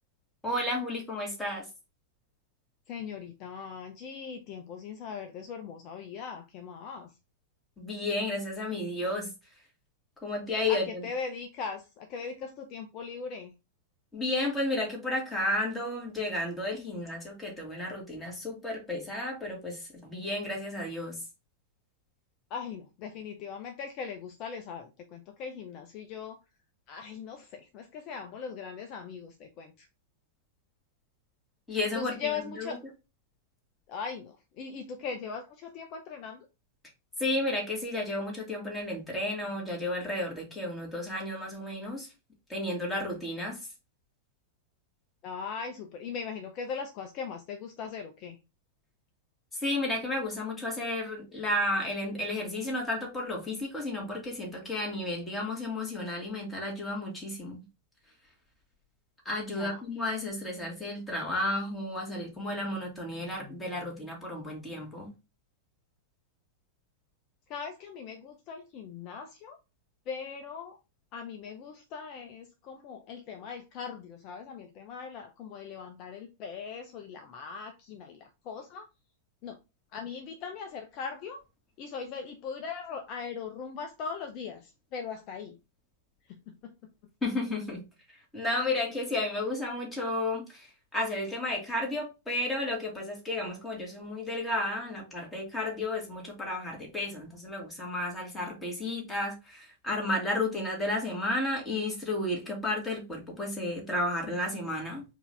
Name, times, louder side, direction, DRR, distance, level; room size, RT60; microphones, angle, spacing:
voice 1, 0.4-1.7 7.8-9.3 10.2-11.0 14.1-21.2 31.7-32.1 32.6-32.8 37.2-42.1 42.5-43.6 49.5-57.6 59.3-65.1 87.2-87.8 88.3-105.0, left 1 dB, 10° left, 2.0 m, -32 dB
voice 2, 2.9-7.1 10.7-13.5 22.5-26.4 26.9-29.9 31.9-32.8 33.9-36.5 45.2-48.4 59.5-59.8 67.5-69.6 70.1-70.8 71.1-78.9 79.4-79.6 79.9-81.4 81.8-85.6 86.3-86.9, left 6 dB, 45° left, 0.6 m, -40 dB
4.5 x 2.8 x 3.4 m
figure-of-eight pair, 95°, 0 cm